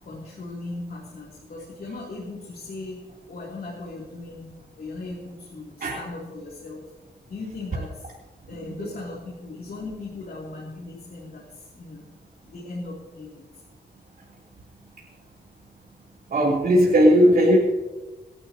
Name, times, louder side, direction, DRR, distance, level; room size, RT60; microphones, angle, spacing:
voice 1, 0.0-6.9 7.3-8.1 8.5-12.0 12.5-13.4, left 2 dB, 65° left, -2 dB, 3.1 m, -38 dB
voice 2, 16.3-17.6, equal, 65° right, -4 dB, 3.3 m, -17 dB
28.0 x 12.0 x 2.9 m, 1.2 s
wide cardioid pair, 160°, 17 cm